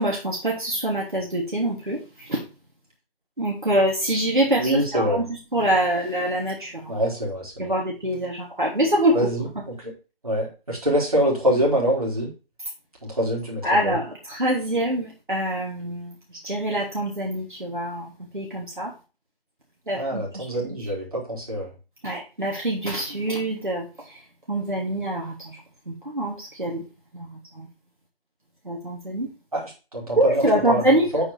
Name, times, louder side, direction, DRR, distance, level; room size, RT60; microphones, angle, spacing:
voice 1, 0.0-2.4 3.4-6.9 7.6-9.2 13.6-16.1 16.4-18.9 19.9-20.4 22.0-23.8 24.5-25.6 25.9-26.8 27.1-27.3 27.5-27.7 28.6-29.3 30.1-31.1, right 1 dB, 55° right, -3 dB, 3.2 m, -25 dB
voice 2, 4.6-5.2 6.9-7.7 9.1-9.9 10.2-12.3 13.0-14.0 19.9-21.7 29.5-30.8 31.1-31.2, equal, 40° right, -3 dB, 3.9 m, -25 dB
8.7 x 7.5 x 3.6 m, 0.31 s
figure-of-eight pair, 170°, 29 cm